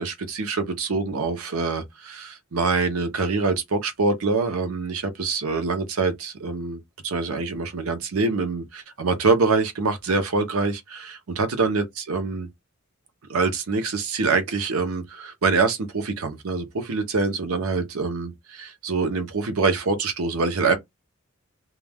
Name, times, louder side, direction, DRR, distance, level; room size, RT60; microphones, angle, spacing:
voice 1, 0.0-12.5 13.3-20.8, right 4 dB, 80° right, 0.7 m, -25 dB
2.3 x 2.2 x 3.3 m
head